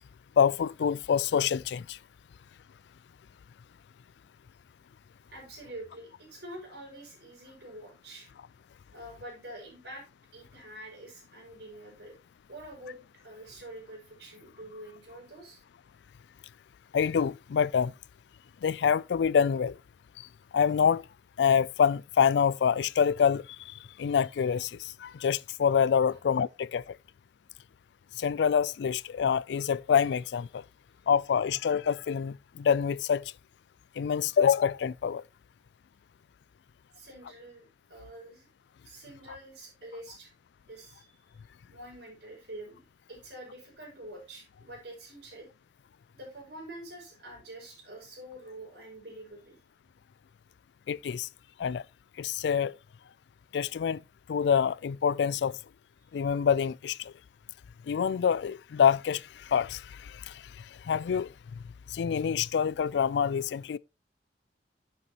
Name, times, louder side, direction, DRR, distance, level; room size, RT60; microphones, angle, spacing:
voice 1, 0.4-2.0 16.9-17.9 18.6-19.8 20.5-21.0 21.4-27.0 28.2-30.6 31.1-33.2 34.0-35.2 50.9-51.3 51.6-51.8 52.2-52.7 53.5-54.0 54.3-55.6 56.1-57.1 57.9-60.4 60.8-61.3 61.9-63.8, left 7 dB, 70° left, 0.3 m, -26 dB
voice 2, 5.3-8.3 8.9-10.0 10.3-12.1 12.5-15.6 26.1-26.2 36.9-38.5 38.8-40.3 40.7-41.2 41.7-42.8 43.1-45.5 46.1-49.6, right 1 dB, 70° right, 5.8 m, -46 dB
10.5 x 7.0 x 2.9 m
head